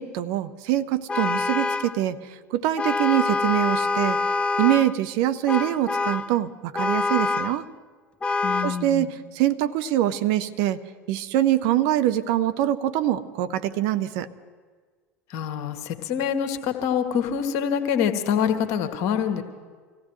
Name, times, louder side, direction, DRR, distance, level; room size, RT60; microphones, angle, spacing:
voice 1, 0.0-4.2 4.6-7.7 8.6-10.8 11.1-14.3, right 13 dB, 55° right, 11 dB, 0.7 m, -24 dB
Vehicle horn car horn honking, 1.1-2.0 2.8-4.9 5.5-6.3 6.7-7.6 8.2-8.8, left 3 dB, 15° left, 0.4 m, -25 dB
voice 2, 8.4-9.1 15.3-19.4, left 8 dB, 55° left, 7 dB, 1.4 m, -25 dB
25.5 x 16.0 x 3.2 m, 1.5 s
figure-of-eight pair, 75°, 7 cm